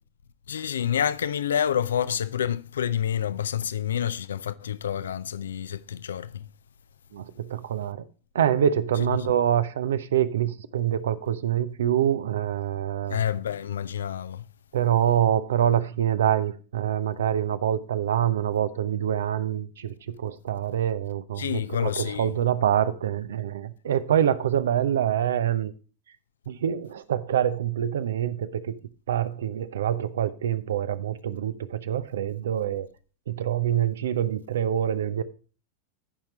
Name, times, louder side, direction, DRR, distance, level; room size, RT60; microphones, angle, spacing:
voice 1, 0.5-6.5 13.1-14.4 21.4-22.3, left 9 dB, 65° left, 0.5 m, -28 dB
voice 2, 7.1-8.1 8.3-13.2 14.7-19.9 20.2-25.7 26.5-28.7 29.1-32.9 33.3-35.2, right 10 dB, 60° right, 0.7 m, -25 dB
14.5 x 5.8 x 3.1 m
figure-of-eight pair, 90°, 0 cm